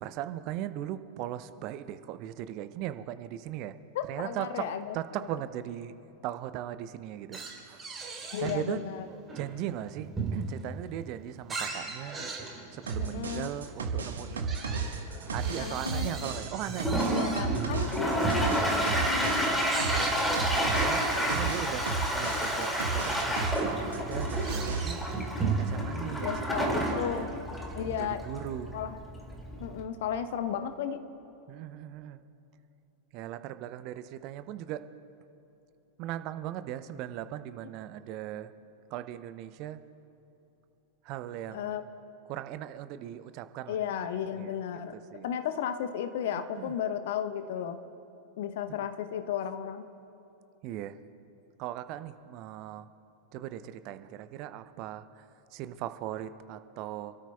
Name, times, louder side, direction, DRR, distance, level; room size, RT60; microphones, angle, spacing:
voice 1, 0.0-3.7 4.1-4.7 4.9-5.9 6.2-7.4 7.7-7.8 8.4-8.8 9.3-12.2 12.7-14.7 15.3-17.6 20.6-21.9 22.1-25.0 25.6-27.3 27.8-28.8 31.5-32.2 33.1-34.8 36.0-38.5 38.9-39.8 41.0-41.8 42.3-44.1 44.3-44.6 44.9-45.3 46.6-46.7 48.7-48.9 50.6-51.0 51.6-52.9 53.3-55.2 55.5-57.2, right 12 dB, 40° right, 12 dB, 0.6 m, -38 dB
voice 2, 3.9-5.3 8.3-9.1 13.0-13.5 15.6-16.3 17.1-18.7 19.0-19.5 26.2-27.3 27.7-28.3 28.7-29.0 29.6-31.0 41.5-41.8 43.7-44.9 45.2-47.8 48.4-49.8, left 8 dB, 55° left, 9 dB, 0.8 m, -34 dB
sound 1, 7.3-8.6 9.0-10.7 11.1-13.7 14.3-22.7 23.3-23.4 23.6-25.9, right 4 dB, 15° right, 3.4 m, -37 dB
sound 2, 12.9-23.7 23.9-24.9, right 5 dB, 70° right, 1.3 m, -34 dB
Toilet flush, 16.7-29.8, equal, 10° left, 2.3 m, -30 dB
28.0 x 13.5 x 2.3 m, 2.9 s
figure-of-eight pair, 90°, 0 cm